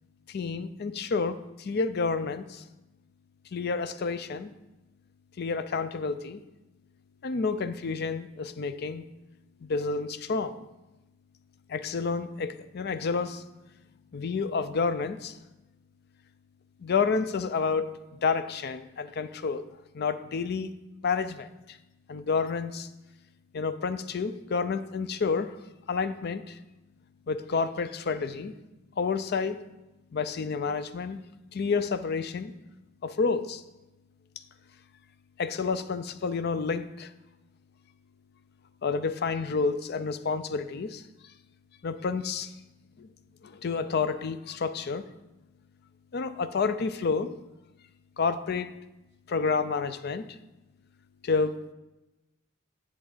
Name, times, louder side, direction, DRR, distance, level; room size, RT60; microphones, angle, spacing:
voice 1, 0.3-2.6 3.5-4.5 5.4-6.4 7.2-9.1 9.6-10.6 11.7-13.4 14.1-15.3 16.8-19.6 19.9-20.7 21.0-21.5 22.1-22.9 23.5-25.6 25.9-26.6 27.3-28.5 29.0-29.6 30.1-31.2 31.5-32.5 33.0-33.6 35.4-37.1 38.8-41.0 41.8-42.5 43.0-43.1 43.4-45.1 46.1-47.3 48.2-48.7 49.3-50.3 51.2-51.6, left 4 dB, 55° left, 12 dB, 0.5 m, -29 dB
10.5 x 3.7 x 7.3 m, 1.0 s
head